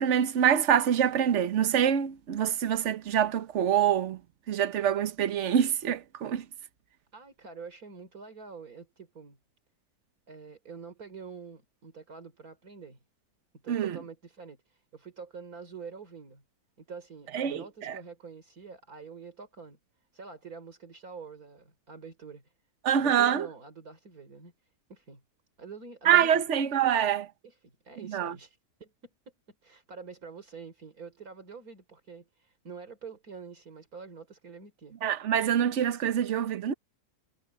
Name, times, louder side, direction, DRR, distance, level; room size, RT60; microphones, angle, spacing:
voice 1, 0.0-4.2 4.5-6.4 13.7-14.0 17.3-18.0 22.8-23.5 26.0-27.3 28.1-28.3 35.0-36.7, right 9 dB, 55° right, 1.2 m, -25 dB
voice 2, 7.1-9.4 10.3-13.0 13.6-16.4 16.8-19.8 20.1-22.5 22.9-24.5 24.9-25.2 25.6-26.4 27.4-29.1 29.6-35.0, right 5 dB, 70° right, 4.0 m, -46 dB
omnidirectional pair, 1.6 m